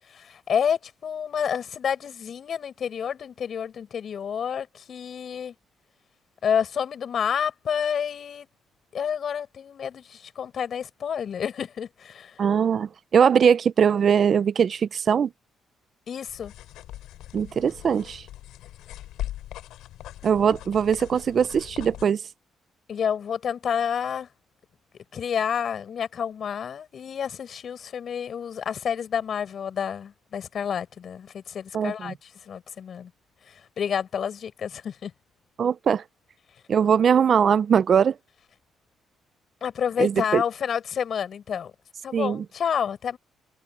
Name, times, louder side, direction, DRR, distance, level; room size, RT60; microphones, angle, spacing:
voice 1, 0.1-5.5 6.4-8.5 8.9-12.4 16.1-16.5 22.9-24.3 25.1-33.1 33.5-35.1 39.6-41.7 42.0-43.2, left 8 dB, 55° left, 7.1 m, -29 dB
voice 2, 12.4-15.3 17.3-18.2 20.2-22.2 31.7-32.1 35.6-36.0 36.7-38.1 40.0-40.4 42.1-42.4, right 7 dB, 50° right, 0.5 m, -21 dB
sound 1, 16.3-22.1, left 14 dB, 85° left, 6.5 m, -40 dB
cardioid pair, 90°, 0 cm